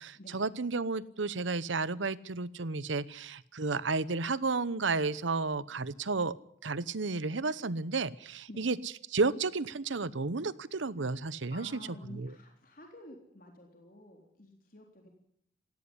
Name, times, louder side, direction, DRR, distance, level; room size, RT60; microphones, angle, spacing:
voice 1, 0.0-6.3 6.6-8.8 9.1-11.7 12.1-12.3, right 4 dB, 85° right, 18 dB, 0.9 m, -32 dB
voice 2, 11.5-15.1, left 1 dB, 50° left, 2 dB, 3.6 m, -50 dB
18.0 x 16.5 x 10.0 m, 0.68 s
head